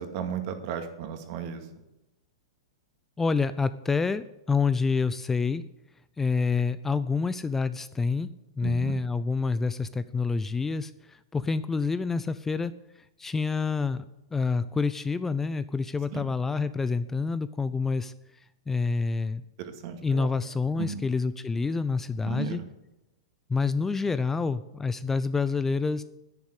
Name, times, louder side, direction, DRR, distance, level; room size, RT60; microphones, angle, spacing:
voice 1, 0.0-1.7 8.6-9.0 16.1-16.3 19.6-20.3 20.8-21.0 22.2-22.6, right 8 dB, 50° right, 7 dB, 2.1 m, -35 dB
voice 2, 3.2-5.6 6.2-8.3 8.6-12.7 13.2-14.0 14.3-18.1 18.7-19.4 20.0-22.6 23.5-26.0, left 4 dB, 10° left, 14 dB, 0.5 m, -27 dB
10.5 x 9.4 x 8.2 m, 0.93 s
hypercardioid pair, 120°, 3 cm